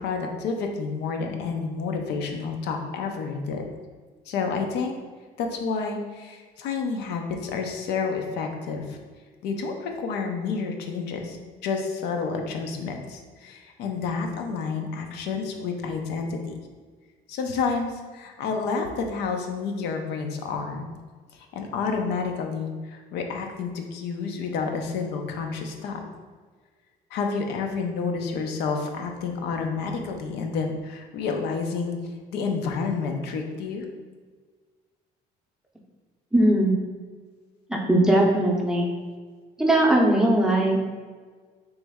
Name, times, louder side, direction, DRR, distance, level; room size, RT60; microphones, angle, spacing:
voice 1, 0.0-3.7 4.3-4.9 5.4-9.0 9.4-11.4 11.6-16.5 17.3-20.9 21.3-26.0 27.1-32.0 32.3-33.8, left 5 dB, 80° left, 3 dB, 0.5 m, -29 dB
voice 2, 36.3-36.8 37.9-38.9 39.6-40.8, right 1 dB, 5° right, -1 dB, 0.6 m, -19 dB
3.2 x 3.0 x 3.5 m, 1.5 s
cardioid pair, 110°, 17 cm